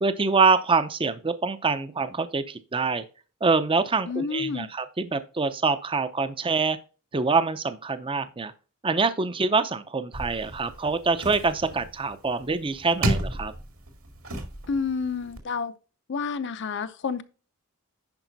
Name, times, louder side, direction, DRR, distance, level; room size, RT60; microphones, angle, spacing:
voice 1, 0.0-3.0 3.4-6.8 7.1-8.5 8.8-13.5, right 4 dB, 25° right, 0.6 m, -25 dB
voice 2, 4.1-4.7 14.7-15.7 16.1-17.2, left 5 dB, 55° left, 0.6 m, -29 dB
sound 1, 10.1-15.4, right 1 dB, 65° right, 2.1 m, -33 dB
10.5 x 4.9 x 4.0 m
head